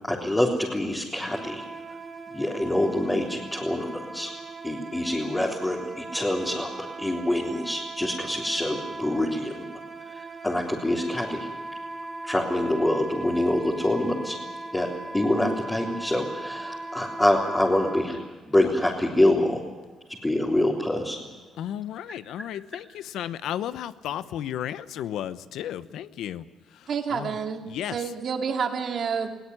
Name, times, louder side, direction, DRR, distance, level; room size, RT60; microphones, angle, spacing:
voice 1, 0.1-1.6 2.3-4.3 4.6-9.6 10.1-11.5 12.2-14.4 14.7-14.9 15.1-18.2 18.4-19.6 20.2-21.2, left 1 dB, 15° left, -3 dB, 3.7 m, -25 dB
Wind instrument woodwind instrument, 1.3-18.1, right 2 dB, 25° right, 2.5 m, -39 dB
voice 2, 21.6-26.4 27.1-27.3 27.6-28.0, left 11 dB, 80° left, 14 dB, 0.9 m, -33 dB
voice 3, 26.9-29.3, right 6 dB, 60° right, 4 dB, 2.8 m, -29 dB
21.0 x 17.5 x 9.8 m, 1.3 s
cardioid pair, 90°, 0 cm